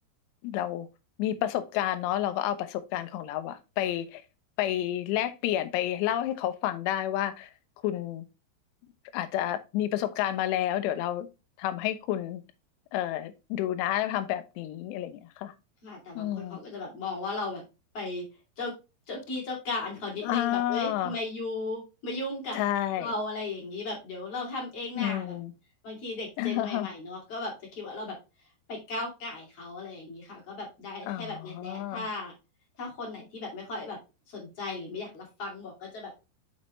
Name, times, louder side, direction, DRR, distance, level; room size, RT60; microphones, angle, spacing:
voice 1, 0.4-0.9 1.2-4.2 4.6-7.5 7.8-8.3 9.1-11.3 11.6-12.4 12.9-15.5 16.2-16.6 20.2-21.2 22.5-23.1 25.0-25.5 26.4-26.9 31.1-32.1, left 12 dB, 80° left, 2.8 m, -30 dB
voice 2, 15.8-17.6 17.9-18.2 18.6-18.7 19.1-22.6 23.0-25.3 25.8-28.2 28.7-32.3 32.8-34.0 34.3-36.1, left 2 dB, 40° left, 2.7 m, -36 dB
6.5 x 5.9 x 3.0 m
omnidirectional pair, 5.3 m